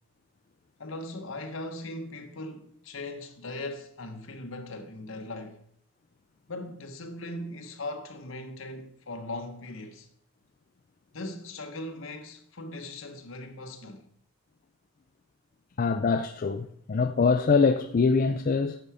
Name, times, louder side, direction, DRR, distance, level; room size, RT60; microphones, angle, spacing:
voice 1, 0.8-5.6 6.5-10.1 11.1-14.0, left 2 dB, 70° left, 1.2 m, -39 dB
voice 2, 15.8-18.8, left 4 dB, 40° left, 0.4 m, -24 dB
9.1 x 6.7 x 4.9 m
head